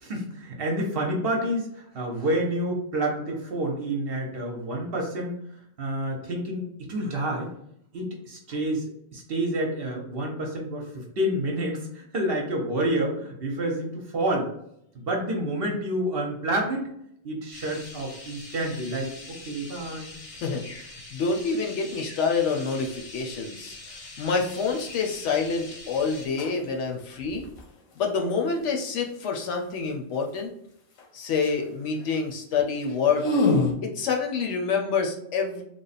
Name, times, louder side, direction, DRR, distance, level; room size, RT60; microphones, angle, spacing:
voice 1, 0.0-5.4 5.8-7.5 7.9-14.5 14.9-16.9 17.2-20.1, right 1 dB, 55° right, 0 dB, 0.8 m, -29 dB
sound 1, 17.5-26.3, left 2 dB, 50° left, 0.4 m, -43 dB
voice 2, 21.1-27.4 28.0-30.5 31.1-33.3 33.8-35.6, left 5 dB, 70° left, 2 dB, 0.9 m, -27 dB
sound 2, 25.3-25.5 26.2-26.7 27.0-27.6 31.0-31.1 31.3-31.7 32.0-32.2 32.6-32.7 32.9-33.7, left 2 dB, 90° left, 1.2 m, -26 dB
3.3 x 2.1 x 4.0 m, 0.73 s
omnidirectional pair, 1.3 m